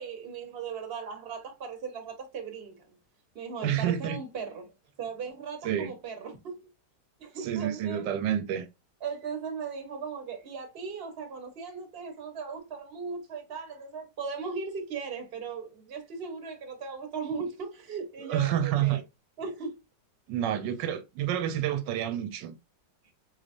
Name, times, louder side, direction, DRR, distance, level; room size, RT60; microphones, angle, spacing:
voice 1, 0.0-3.0 3.3-4.7 5.0-6.6 7.2-8.1 9.0-19.0 19.4-19.7, right 5 dB, 40° right, 1.1 m, -38 dB
voice 2, 3.6-4.2 5.6-5.9 7.4-8.7 18.2-19.0 20.3-22.5, right 10 dB, 85° right, 1.3 m, -29 dB
4.1 x 3.2 x 2.5 m
omnidirectional pair, 1.9 m